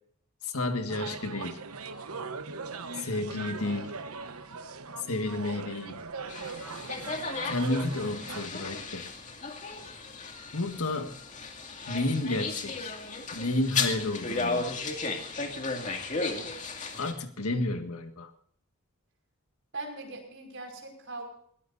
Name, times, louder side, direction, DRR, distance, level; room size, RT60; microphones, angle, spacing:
voice 1, 0.4-1.6 3.0-3.9 5.1-6.0 7.4-9.0 10.5-11.2 11.9-13.0 13.3-14.7 17.0-18.3, left 2 dB, 85° left, 7 dB, 1.8 m, -31 dB
sound 1, 0.9-8.5, right 4 dB, 85° right, 1.2 m, -40 dB
sound 2, 6.3-17.1, left 3 dB, 35° left, 2.3 m, -35 dB
voice 2, 19.7-21.2, right 2 dB, 60° right, 2 dB, 5.5 m, -40 dB
21.0 x 18.0 x 2.7 m, 0.64 s
head